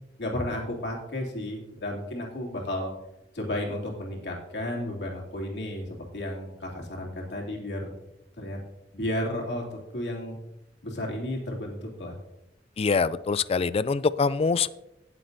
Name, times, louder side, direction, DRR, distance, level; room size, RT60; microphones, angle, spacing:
voice 1, 0.2-2.9 3.3-7.9 8.4-8.6 8.9-10.4 10.8-12.2, left 1 dB, 75° left, -1 dB, 2.8 m, -33 dB
voice 2, 12.8-14.7, left 4 dB, 35° left, 17 dB, 0.3 m, -24 dB
17.5 x 7.6 x 2.7 m, 0.90 s
head